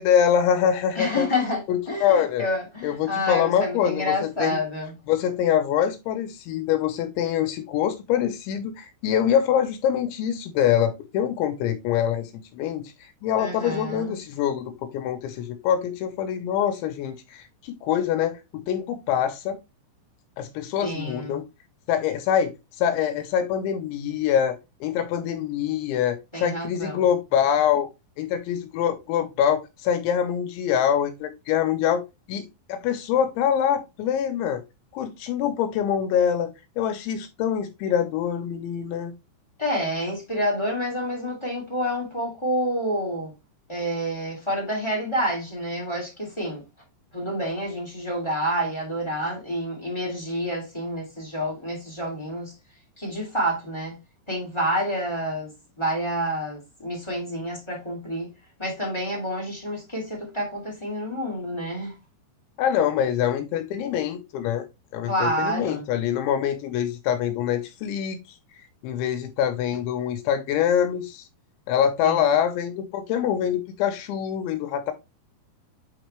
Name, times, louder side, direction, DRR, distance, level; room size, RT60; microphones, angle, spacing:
voice 1, 0.0-1.3 1.7-2.5 2.8-4.6 5.1-12.9 13.2-19.6 20.4-21.4 21.9-22.5 22.8-27.9 28.2-32.0 32.3-34.6 34.9-39.1 62.6-64.7 64.9-68.2 68.8-71.2 71.7-74.9, left 9 dB, 80° left, 3.1 m, -24 dB
voice 2, 0.9-4.9 13.4-14.2 20.8-21.4 26.3-27.0 39.6-43.3 43.7-46.6 47.1-52.5 53.0-53.9 54.3-55.5 55.8-58.3 58.6-61.9 65.0-65.9 72.0-72.3, equal, 15° left, 1.1 m, -28 dB
8.6 x 4.1 x 3.3 m
omnidirectional pair, 5.5 m